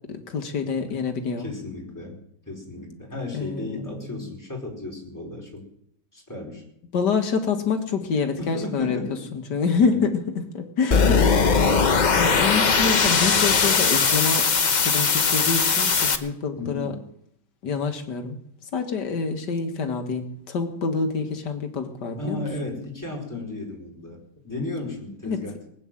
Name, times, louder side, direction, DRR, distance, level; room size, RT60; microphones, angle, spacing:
voice 1, 0.1-1.5 3.3-4.2 6.9-9.0 9.5-11.5 12.1-14.5 14.8-16.9 17.6-18.4 18.7-22.4 25.2-25.5, left 5 dB, 65° left, 6 dB, 2.1 m, -26 dB
voice 2, 1.4-2.2 2.5-5.6 6.1-6.6 8.4-9.2 9.8-10.0 16.6-17.0 22.2-25.7, left 2 dB, 10° left, -2 dB, 4.2 m, -34 dB
sound 1, 10.9-16.2, left 5 dB, 40° left, 0.6 m, -20 dB
20.0 x 9.0 x 7.4 m, 0.72 s
omnidirectional pair, 2.0 m